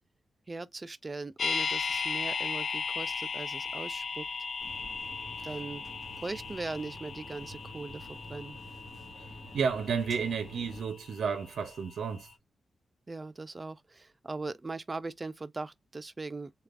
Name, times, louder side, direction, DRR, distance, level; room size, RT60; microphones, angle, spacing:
voice 1, 0.5-4.3 5.4-5.8 6.2-8.6 13.1-16.5, right 3 dB, 25° right, 0.4 m, -39 dB
sound 1, 1.4-11.4 11.7-11.8, left 5 dB, 45° left, 0.6 m, -36 dB
sound 2, 4.6-10.8, left 1 dB, 30° left, 2.8 m, -49 dB
voice 2, 9.5-12.3, right 6 dB, 75° right, 0.7 m, -32 dB
6.6 x 2.4 x 2.4 m
wide cardioid pair, 145°, 0 cm